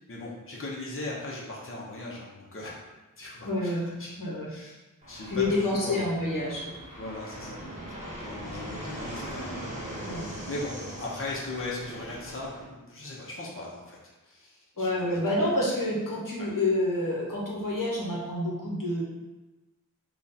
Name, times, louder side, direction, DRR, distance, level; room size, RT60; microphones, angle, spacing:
voice 1, 0.1-2.8 3.2-4.2 4.5-4.8 5.1-6.1 7.0-7.6 8.2-9.5 10.5-14.0 14.2-15.5 16.4-16.5, left 2 dB, 40° left, -5 dB, 0.8 m, -38 dB
voice 2, 3.4-3.8 4.2-4.5 5.3-6.7 10.0-10.2 14.8-19.0, left 1 dB, 70° left, -5 dB, 0.9 m, -28 dB
Fixed-wing aircraft airplane, 5.0-12.6, right 1 dB, 20° right, 1.2 m, -40 dB
3.6 x 2.5 x 4.1 m, 1.1 s
wide cardioid pair, 45°, 34 cm